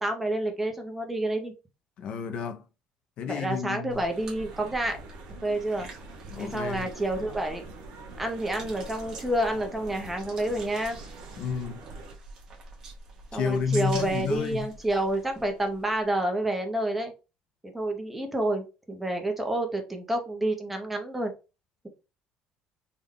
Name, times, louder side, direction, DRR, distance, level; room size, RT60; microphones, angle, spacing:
voice 1, 0.0-1.5 3.3-5.0 5.4-5.9 6.4-7.6 8.2-11.0 13.3-17.1 17.6-21.3, right 1 dB, 5° right, 0.6 m, -29 dB
voice 2, 2.0-2.6 3.2-4.0 6.3-6.9 11.4-11.9 13.3-14.7, left 7 dB, 45° left, 0.4 m, -31 dB
sound 1, 3.9-16.1, right 3 dB, 30° right, 0.9 m, -46 dB
sound 2, 4.1-12.2, right 3 dB, 90° right, 0.7 m, -46 dB
3.5 x 2.2 x 3.5 m
cardioid pair, 180°, 2 cm